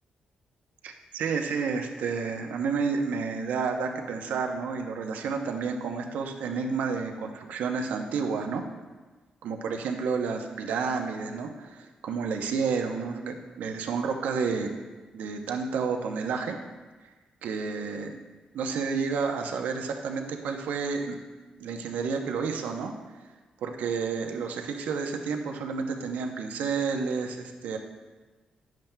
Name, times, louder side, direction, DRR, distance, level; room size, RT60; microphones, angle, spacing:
voice 1, 0.8-8.6 9.4-14.8 15.1-16.6 17.4-18.2 18.5-21.2 21.6-22.9 23.6-27.8, right 5 dB, 90° right, 4 dB, 0.7 m, -30 dB
10.5 x 7.4 x 2.2 m, 1.3 s
cardioid pair, 75°, 3 cm